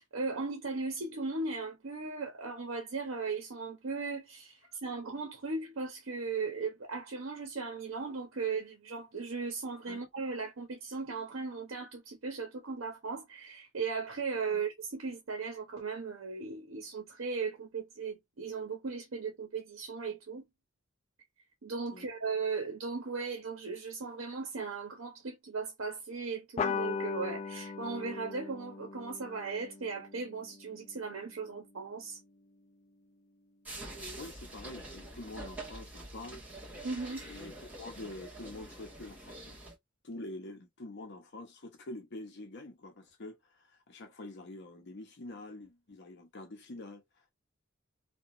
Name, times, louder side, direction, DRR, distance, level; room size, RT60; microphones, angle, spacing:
voice 1, 0.0-20.4 21.6-32.2 36.8-37.2, right 4 dB, 80° right, 0.7 m, -37 dB
sound 1, 26.6-31.5, left 5 dB, 35° left, 0.3 m, -39 dB
sound 2, 33.6-39.7, right 1 dB, 10° right, 1.2 m, -46 dB
voice 2, 34.2-36.4 37.2-39.6 40.0-47.3, left 2 dB, 60° left, 0.7 m, -46 dB
2.8 x 2.2 x 2.5 m
head